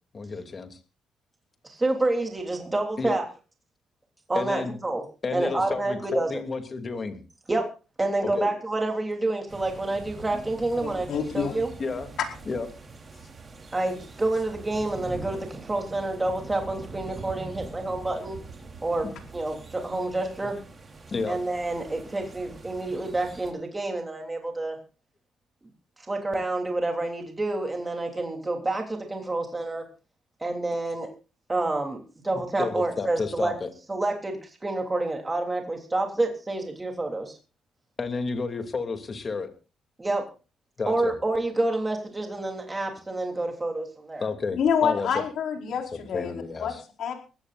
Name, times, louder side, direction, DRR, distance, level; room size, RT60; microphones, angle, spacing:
voice 1, 0.1-0.8 3.0-3.2 4.3-4.7 5.2-7.2 8.2-8.5 11.8-12.1 12.5-12.7 20.4-20.5 21.1-21.4 32.3-33.7 38.0-39.5 40.8-41.1 44.2-45.1 45.9-46.8, left 4 dB, 40° left, 6 dB, 2.7 m, -31 dB
voice 2, 1.6-3.3 4.3-5.0 5.3-6.4 7.5-7.7 8.0-11.1 11.3-11.7 13.7-18.4 18.8-20.6 21.3-24.8 26.1-29.8 30.4-31.1 31.5-33.5 33.9-37.3 40.0-40.3 40.8-44.3, right 2 dB, 20° right, 2 dB, 3.2 m, -28 dB
sound 1, 9.5-23.5, right 3 dB, 35° right, 3.6 m, -43 dB
voice 3, 10.8-11.6 44.6-47.1, left 7 dB, 70° left, 2 dB, 4.6 m, -27 dB
22.0 x 16.0 x 2.6 m, 0.33 s
cardioid pair, 90°, 0 cm